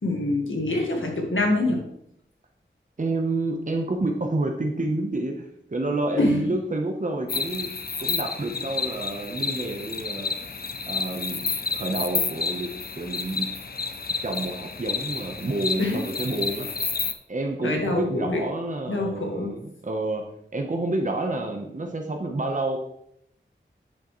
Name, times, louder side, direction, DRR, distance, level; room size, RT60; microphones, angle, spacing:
voice 1, 0.0-1.8 6.2-6.4 15.8-16.0 17.6-18.4 18.9-19.5, left 2 dB, 80° left, 1 dB, 1.7 m, -25 dB
voice 2, 3.0-7.7 8.0-10.3 10.9-11.4 11.7-12.7 13.0-13.5 14.2-16.7 17.3-20.2 20.5-22.8, right 2 dB, 40° right, 2 dB, 1.0 m, -29 dB
sound 1, 7.3-17.1, left 4 dB, 50° left, 0.6 m, -30 dB
8.4 x 6.5 x 3.2 m, 0.75 s
wide cardioid pair, 55°, 20 cm